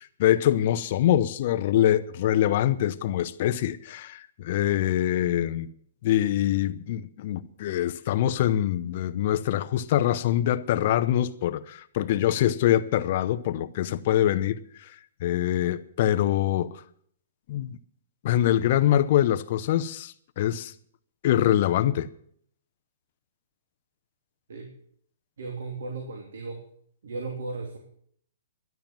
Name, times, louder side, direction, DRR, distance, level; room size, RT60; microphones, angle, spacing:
voice 1, 0.0-5.7 6.0-14.9 15.2-16.7 17.5-17.8 18.2-20.7 21.2-22.1, left 12 dB, 40° left, 0.8 m, -24 dB
voice 2, 25.4-26.6 27.0-27.8, right 3 dB, 80° right, 3.0 m, -35 dB
12.5 x 10.5 x 7.4 m
hypercardioid pair, 160°, 0 cm